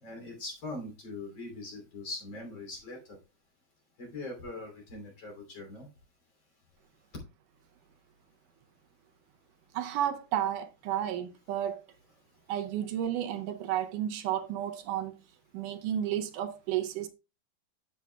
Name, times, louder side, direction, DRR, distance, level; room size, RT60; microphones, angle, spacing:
voice 1, 0.0-3.2 4.0-5.9, left 2 dB, 35° left, 3.4 m, -41 dB
voice 2, 9.7-11.8 12.5-15.1 15.5-17.1, right 11 dB, 80° right, 2.2 m, -32 dB
11.0 x 7.3 x 2.2 m
omnidirectional pair, 3.8 m